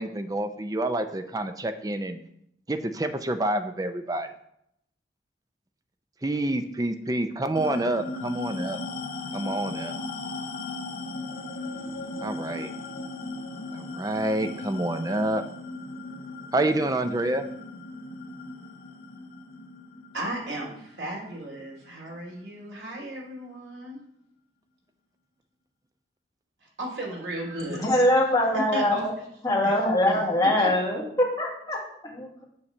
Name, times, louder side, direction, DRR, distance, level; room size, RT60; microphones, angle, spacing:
voice 1, 0.0-2.2 2.7-4.3 6.2-8.8 9.3-10.0 12.2-12.7 13.7-15.4 16.5-17.4, right 1 dB, 20° right, 9 dB, 0.5 m, -28 dB
sound 1, 7.6-22.4, left 3 dB, 50° left, 0.7 m, -37 dB
voice 2, 20.1-24.0 26.6-27.8 28.5-29.0 29.6-29.7 30.1-30.2 30.6-30.7, right 1 dB, 90° right, -3 dB, 2.7 m, -35 dB
voice 3, 27.7-29.1 29.4-32.4, left 1 dB, 20° left, -3 dB, 1.7 m, -23 dB
8.5 x 3.2 x 6.5 m, 0.75 s
head